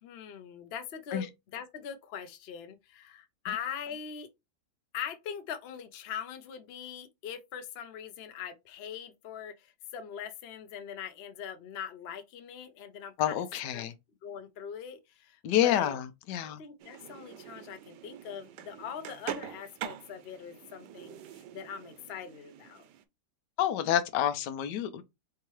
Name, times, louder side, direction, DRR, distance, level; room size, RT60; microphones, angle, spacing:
voice 1, 0.0-4.3 4.9-13.4 13.7-13.9 14.2-16.0 16.4-22.8, left 8 dB, 55° left, 0.7 m, -42 dB
voice 2, 13.2-13.9 15.4-16.6 23.6-25.0, left 11 dB, 85° left, 1.2 m, -28 dB
sound 1, 16.8-23.0, right 10 dB, 80° right, 1.2 m, -44 dB
4.5 x 2.9 x 3.1 m
omnidirectional pair, 1.8 m